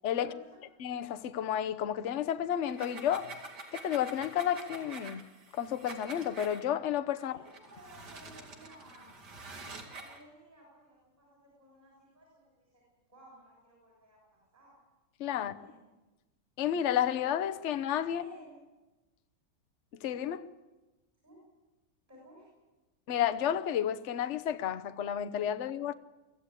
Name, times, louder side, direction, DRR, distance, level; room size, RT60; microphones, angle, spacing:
voice 1, 0.1-0.6 7.2-9.1 10.0-12.8 13.1-14.8 15.3-15.9 18.1-18.6 21.2-21.4 22.1-22.5, right 1 dB, 20° right, 7.4 m, -56 dB
voice 2, 0.8-3.3 3.7-5.2 5.5-7.3 15.2-15.5 16.6-18.2 20.0-20.4 23.1-25.9, left 10 dB, 50° left, 0.9 m, -31 dB
sound 1, 2.6-6.6 7.4-10.2, right 3 dB, 55° right, 2.9 m, -47 dB
24.0 x 16.0 x 8.3 m
omnidirectional pair, 2.1 m